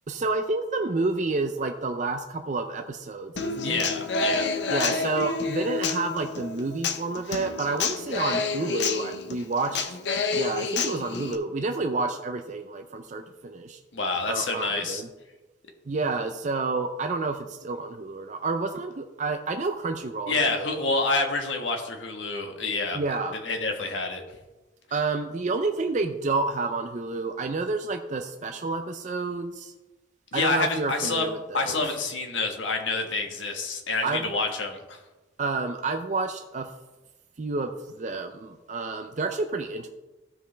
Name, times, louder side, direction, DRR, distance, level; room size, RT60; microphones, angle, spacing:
voice 1, 0.1-3.8 4.7-10.0 10.4-13.8 14.3-15.1 15.9-20.7 22.9-23.3 24.9-29.7 30.3-31.8 34.0-34.3 35.4-36.7 37.4-39.9, right 3 dB, 40° right, 6 dB, 0.5 m, -29 dB
Human voice / Acoustic guitar, 3.4-11.3, left 4 dB, 65° left, 0.7 m, -29 dB
voice 2, 3.6-4.5 13.9-15.0 20.3-23.0 23.4-24.2 30.3-31.3 31.5-35.0, left 3 dB, 85° left, 3 dB, 1.4 m, -28 dB
15.0 x 5.3 x 3.3 m, 1.1 s
head